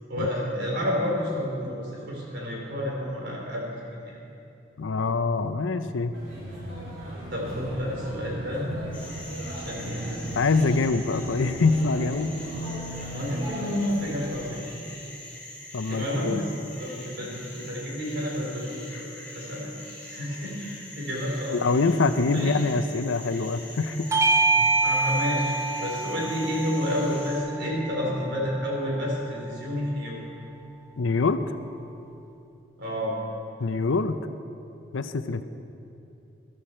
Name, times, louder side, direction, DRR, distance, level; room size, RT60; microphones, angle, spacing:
voice 1, 0.1-4.2 7.3-8.7 9.4-10.4 13.1-14.6 15.9-19.7 20.0-21.6 22.3-22.5 24.8-25.5 25.8-30.2 32.8-33.1, equal, 60° right, -3 dB, 3.7 m, -30 dB
voice 2, 4.8-6.1 10.3-12.3 15.7-16.4 21.5-24.1 24.6-24.7 31.0-31.4 33.6-34.2 34.9-35.4, left 3 dB, 85° left, 11 dB, 0.6 m, -24 dB
sound 1, 6.1-14.3, equal, 90° right, 3.7 m, -37 dB
sound 2, 8.9-27.4, left 1 dB, 10° left, 3.3 m, -43 dB
Bell / Doorbell, 24.1-28.9, right 2 dB, 15° right, 0.5 m, -26 dB
14.0 x 13.0 x 4.4 m, 2.7 s
head